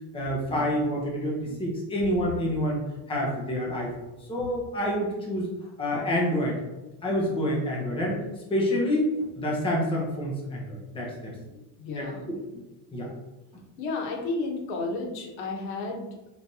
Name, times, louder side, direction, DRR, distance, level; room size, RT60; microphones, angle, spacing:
voice 1, 0.1-2.8 3.1-5.5 5.8-6.6 7.0-8.2 8.5-11.3 12.0-12.4 12.9-13.1, equal, 10° left, -3 dB, 0.8 m, -28 dB
voice 2, 11.5-12.2 13.8-16.1, left 3 dB, 90° left, 1 dB, 1.1 m, -32 dB
4.4 x 3.4 x 2.7 m, 1.0 s
cardioid pair, 150°, 50 cm